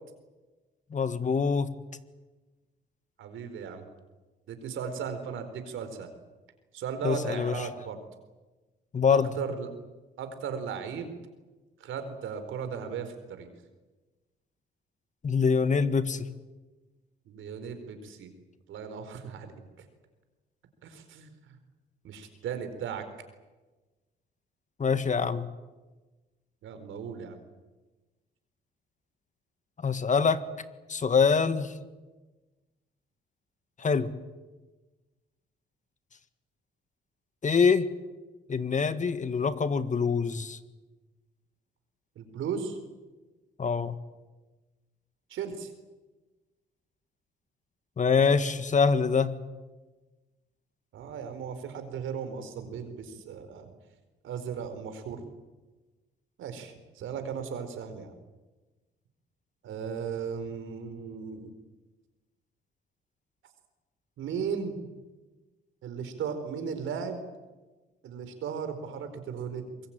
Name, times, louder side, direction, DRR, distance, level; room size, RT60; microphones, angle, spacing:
voice 1, 0.9-1.7 7.0-7.5 8.9-9.3 15.2-16.3 24.8-25.5 29.8-30.4 30.9-31.7 33.8-34.1 37.4-37.9 38.5-40.6 43.6-44.0 48.0-49.3, left 5 dB, 40° left, 12 dB, 1.8 m, -24 dB
voice 2, 3.2-3.9 4.5-6.1 6.7-8.0 9.1-9.7 10.2-11.1 11.8-13.5 17.3-18.3 18.7-19.5 20.8-21.3 22.0-23.0 26.6-27.4 42.2-42.8 45.3-45.7 50.9-53.7 54.2-55.2 56.4-58.1 59.6-61.5 64.2-64.8 65.8-67.2 68.0-69.6, right 6 dB, 80° right, 9 dB, 4.2 m, -36 dB
24.5 x 22.0 x 9.0 m, 1.2 s
cardioid pair, 90°, 20 cm